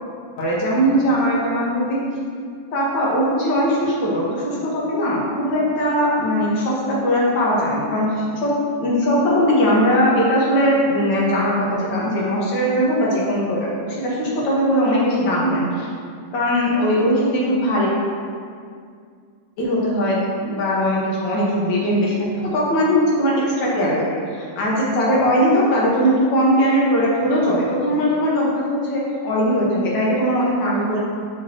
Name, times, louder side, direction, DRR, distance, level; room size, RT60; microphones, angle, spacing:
voice 1, 0.4-2.0 2.7-8.5 8.8-15.9 16.3-17.9 19.6-24.1 24.4-31.0, equal, 70° left, -5 dB, 2.1 m, -20 dB
9.2 x 5.1 x 2.9 m, 2.2 s
omnidirectional pair, 2.1 m